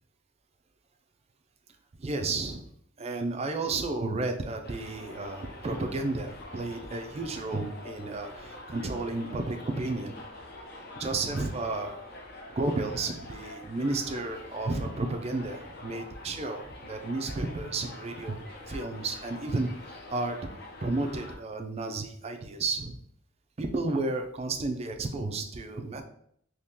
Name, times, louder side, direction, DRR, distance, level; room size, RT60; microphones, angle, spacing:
voice 1, 2.0-2.6 3.0-10.1 11.0-12.0 12.5-18.4 18.7-20.4 20.8-23.0 23.6-26.0, right 2 dB, 30° right, 5 dB, 0.4 m, -32 dB
Subway metro underground, 4.6-21.3, left 1 dB, 50° left, 0.7 m, -45 dB
3.6 x 2.9 x 2.8 m, 0.68 s
head